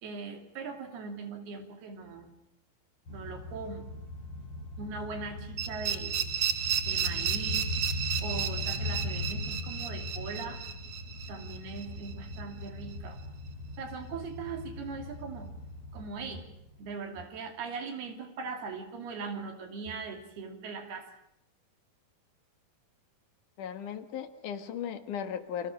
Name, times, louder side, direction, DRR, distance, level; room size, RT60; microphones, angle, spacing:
voice 1, 0.0-2.3 3.1-3.8 4.8-6.2 6.8-7.7 8.2-10.6 11.3-13.2 13.8-15.5 15.9-16.5 16.8-21.1, right 4 dB, 75° right, 5 dB, 4.9 m, -40 dB
sound 1, 3.1-16.9, left 2 dB, 35° left, 7.1 m, -39 dB
sound 2, 5.6-12.4, right 8 dB, 55° right, 2.2 m, -33 dB
voice 2, 23.6-25.7, left 8 dB, 60° left, 8 dB, 2.8 m, -37 dB
29.5 x 24.5 x 6.5 m, 0.78 s
omnidirectional pair, 4.5 m